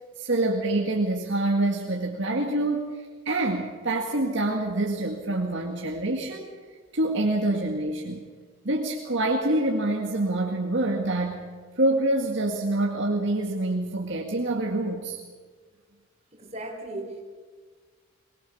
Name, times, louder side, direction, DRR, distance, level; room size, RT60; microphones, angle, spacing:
voice 1, 0.2-6.5 6.9-8.2 8.6-11.5 11.8-15.2, right 2 dB, 60° right, 0 dB, 2.0 m, -26 dB
voice 2, 16.3-17.2, right 2 dB, 35° right, 0 dB, 4.6 m, -36 dB
22.0 x 20.5 x 7.1 m, 1.5 s
head